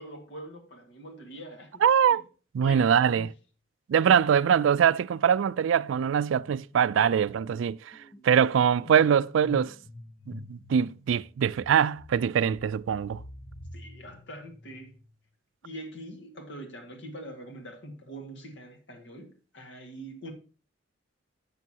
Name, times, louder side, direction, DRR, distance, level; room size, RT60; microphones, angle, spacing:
voice 1, 0.0-2.2 2.6-3.3 13.7-14.9 15.6-20.3, right 1 dB, 65° left, 1.9 m, -44 dB
voice 2, 1.8-2.2 2.5-3.3 3.9-7.8 8.2-9.7 10.3-13.2, right 8 dB, 80° right, 0.3 m, -23 dB
sound 1, 6.7-15.1, left 2 dB, 35° left, 0.7 m, -48 dB
11.0 x 6.9 x 2.8 m
head